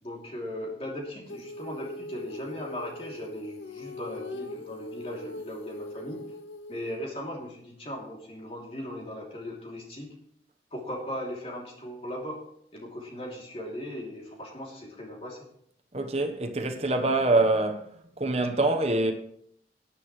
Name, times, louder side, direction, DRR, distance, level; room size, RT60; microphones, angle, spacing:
voice 1, 0.0-6.2 6.7-10.1 10.7-12.4 12.7-15.4, left 1 dB, 35° left, 2.9 m, -38 dB
Female singing, 1.3-7.0, left 1 dB, 85° left, 0.9 m, -41 dB
voice 2, 15.9-17.9 18.2-19.1, right 2 dB, 35° right, 1.1 m, -25 dB
17.0 x 10.0 x 3.2 m
head